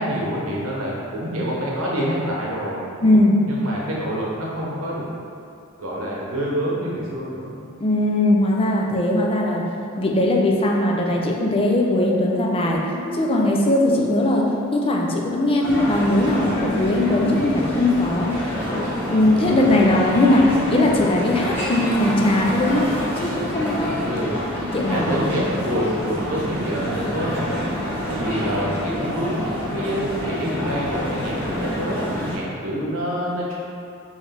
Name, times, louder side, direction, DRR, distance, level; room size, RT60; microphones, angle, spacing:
voice 1, 0.0-2.8 3.5-5.0 5.8-7.5 24.0-24.4 24.9-27.6 28.1-33.5, equal, 85° right, -4 dB, 0.9 m, -27 dB
voice 2, 3.0-3.4 7.8-9.7 10.0-12.8 13.1-18.4 19.1-22.9 23.2-24.1 24.6-25.2, left 1 dB, 25° left, -1 dB, 0.5 m, -19 dB
Guitar, 12.7-16.4, equal, 35° right, 0.8 m, -38 dB
sound 1, 15.6-32.4, left 1 dB, 10° left, 1.0 m, -27 dB
4.5 x 3.2 x 3.3 m, 2.6 s
head